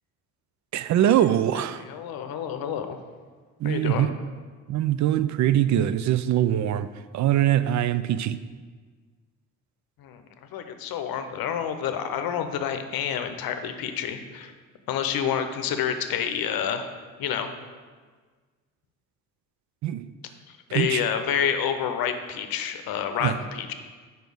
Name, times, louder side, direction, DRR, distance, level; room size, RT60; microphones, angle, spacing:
voice 1, 0.7-1.8 3.6-4.1 4.7-6.9 7.1-8.4 19.8-20.1 20.7-21.0 23.2-23.3, right 11 dB, 45° right, 14 dB, 0.4 m, -22 dB
voice 2, 1.9-3.0 3.6-4.1 10.0-10.2 10.5-14.5 14.9-16.9 17.2-17.5 20.5-23.7, left 8 dB, 60° left, 8 dB, 0.8 m, -28 dB
5.2 x 4.6 x 6.1 m, 1.5 s
hypercardioid pair, 55°, 40 cm